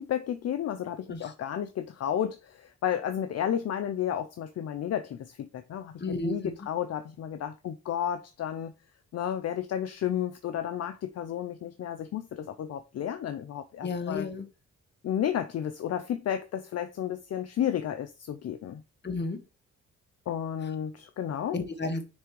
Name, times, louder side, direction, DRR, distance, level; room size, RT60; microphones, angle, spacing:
voice 1, 0.0-8.7 9.1-14.3 15.0-18.8 20.3-21.6, left 10 dB, 60° left, 0.6 m, -32 dB
voice 2, 6.0-6.5 13.8-14.5 19.0-19.4 21.5-22.0, left 3 dB, 35° left, 1.4 m, -32 dB
9.5 x 3.4 x 3.1 m
cardioid pair, 75°, 29 cm